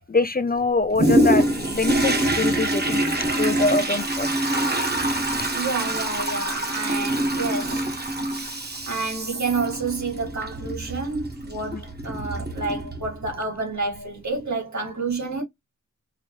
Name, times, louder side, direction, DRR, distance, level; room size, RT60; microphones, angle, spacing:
voice 1, 0.1-3.0 3.3-4.6 11.7-11.8, left 3 dB, 30° left, 0.4 m, -24 dB
Toilet flush, 1.0-13.4 13.9-14.0, right 1 dB, 35° right, 1.2 m, -25 dB
voice 2, 5.5-7.9 8.8-15.4, right 3 dB, 65° right, 2.1 m, -29 dB
4.9 x 2.8 x 2.9 m
wide cardioid pair, 95°, 31 cm